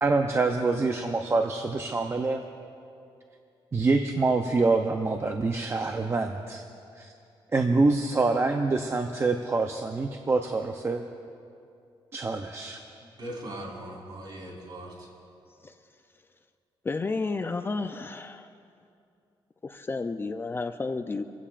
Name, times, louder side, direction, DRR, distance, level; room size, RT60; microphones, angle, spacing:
voice 1, 0.0-2.4 3.7-6.6 7.0-7.1 7.5-11.0 12.1-12.8, right 3 dB, 25° right, 4 dB, 0.6 m, -26 dB
voice 2, 13.0-15.1, right 1 dB, 50° right, -3 dB, 3.8 m, -40 dB
voice 3, 16.8-18.5 19.6-21.2, left 3 dB, 25° left, 7 dB, 0.4 m, -31 dB
25.5 x 16.0 x 2.5 m, 2.5 s
wide cardioid pair, 150°, 10 cm